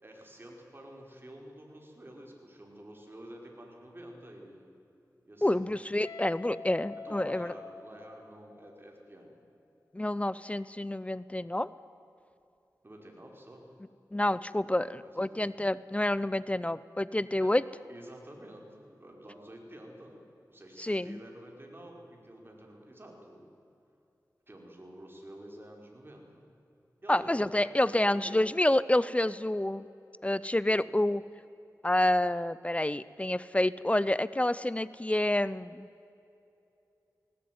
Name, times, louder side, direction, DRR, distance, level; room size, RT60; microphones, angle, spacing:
voice 1, 0.0-4.7 5.3-5.8 7.0-9.3 12.8-13.6 14.6-15.5 17.4-20.2 20.5-23.5 24.5-26.4 27.0-27.7 28.0-28.4 30.7-30.9, right 1 dB, 35° right, 0 dB, 5.2 m, -49 dB
voice 2, 5.4-7.5 9.9-11.7 14.1-17.6 20.8-21.2 27.1-29.9 30.2-31.2 31.8-35.9, left 1 dB, 20° left, 18 dB, 0.6 m, -28 dB
Guitar, 6.0-8.9, left 4 dB, 80° left, 1.6 m, -46 dB
19.0 x 18.5 x 9.5 m, 2.8 s
wide cardioid pair, 55°, 7 cm